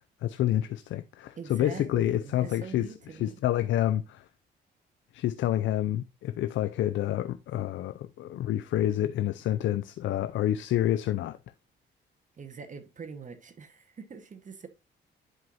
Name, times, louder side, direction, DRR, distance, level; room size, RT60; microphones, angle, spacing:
voice 1, 0.2-2.9 3.2-4.2 5.1-11.4, left 12 dB, 70° left, 0.5 m, -28 dB
voice 2, 1.4-3.4 12.4-14.7, right 5 dB, 40° right, 1.3 m, -43 dB
10.5 x 4.7 x 2.6 m
cardioid pair, 90°, 20 cm